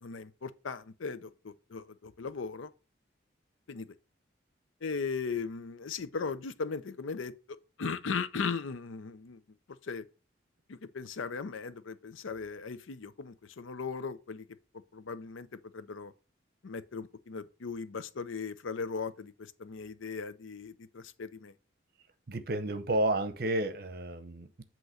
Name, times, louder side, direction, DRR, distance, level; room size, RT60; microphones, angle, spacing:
voice 1, 0.0-2.7 3.7-3.9 4.8-7.3 7.8-9.4 9.8-10.0 10.7-14.5 14.9-15.5 15.7-16.1 16.6-21.5, left 5 dB, 90° left, 0.6 m, -38 dB
voice 2, 22.3-24.6, right 1 dB, 50° right, 0.8 m, -31 dB
7.9 x 3.1 x 6.2 m
head